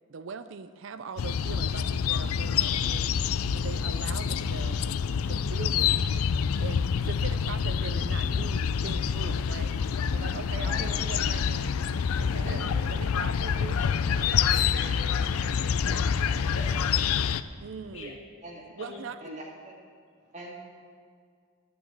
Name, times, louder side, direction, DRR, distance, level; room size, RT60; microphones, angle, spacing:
voice 1, 0.1-3.2 3.5-4.8 5.2-6.1 6.6-9.7 10.1-11.8 12.2-13.8 17.6-18.2 18.8-19.4, right 5 dB, 60° right, 12 dB, 0.4 m, -41 dB
sound 1, 1.2-17.4, left 7 dB, 80° left, 0.4 m, -27 dB
voice 2, 12.3-12.8 18.4-18.7 19.2-19.7 20.3-20.5, right 1 dB, 30° right, -2 dB, 2.1 m, -43 dB
voice 3, 14.2-16.8 17.9-18.1 18.8-19.0, left 2 dB, 60° left, -1 dB, 2.0 m, -43 dB
11.5 x 8.6 x 7.3 m, 2.1 s
head